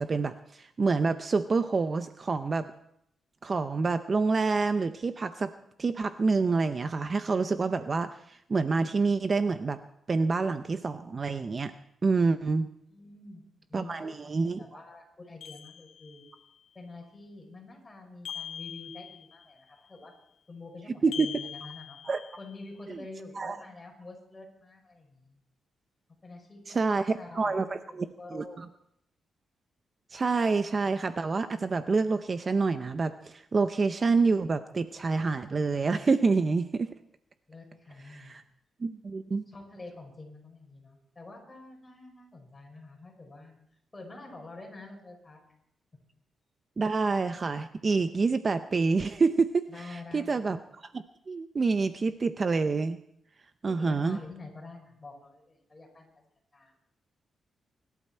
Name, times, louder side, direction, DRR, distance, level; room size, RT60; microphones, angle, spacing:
voice 1, 0.0-2.7 3.4-5.5 5.8-9.8 10.1-11.7 12.0-12.7 13.7-14.6 21.0-21.3 22.1-22.2 22.9-23.0 23.4-23.6 26.7-27.0 27.3-27.7 28.0-28.1 28.3-28.6 30.1-36.9 38.1-38.4 38.8-39.4 46.8-53.0 53.6-54.2, right 4 dB, 35° right, 10 dB, 0.6 m, -27 dB
voice 2, 12.9-13.4 13.7-16.2 16.7-20.1 20.5-22.0 22.4-25.4 26.2-28.6 37.5-38.4 39.5-43.5 43.9-45.4 49.7-50.4 53.6-56.1 56.5-56.7, left 2 dB, 20° left, 0 dB, 5.6 m, -47 dB
sound 1, 15.4-16.4 18.3-19.5 21.1-22.6, left 9 dB, 75° left, 1.1 m, -42 dB
25.0 x 12.0 x 4.4 m, 0.75 s
cardioid pair, 125°, 0 cm